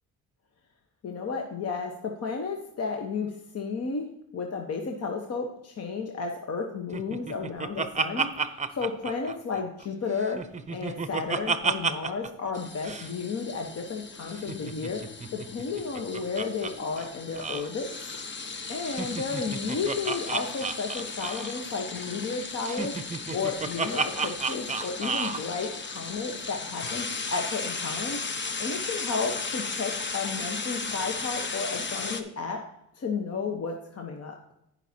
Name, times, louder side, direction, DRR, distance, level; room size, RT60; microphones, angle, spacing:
voice 1, 1.0-4.1 4.3-10.4 10.7-15.0 15.3-17.9 18.7-23.0 23.3-28.2 28.6-32.6 32.9-34.4, left 4 dB, 55° left, 3 dB, 1.3 m, -33 dB
Laughter, 6.9-9.9 10.2-12.3 12.5-12.6 12.8-13.1 14.3-16.7 17.0-17.1 17.4-17.7 18.8-21.6 22.6-25.4, right 4 dB, 25° right, 0.8 m, -31 dB
sound 1, 12.5-32.2, left 4 dB, 40° left, 1.1 m, -36 dB
15.5 x 5.9 x 2.9 m, 0.81 s
cardioid pair, 90°, 30 cm